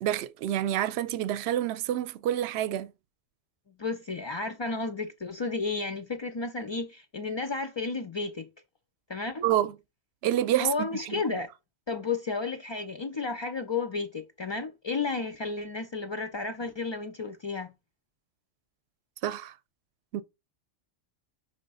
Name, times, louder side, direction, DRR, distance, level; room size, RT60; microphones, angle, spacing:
voice 1, 0.0-2.9 9.4-9.7 10.2-11.2 19.2-19.5 20.1-20.2, right 12 dB, 70° right, 0.8 m, -28 dB
voice 2, 3.8-8.5 9.1-9.5 10.6-11.5 11.9-17.7, left 4 dB, 45° left, 0.3 m, -32 dB
5.7 x 3.3 x 5.4 m
omnidirectional pair, 1.2 m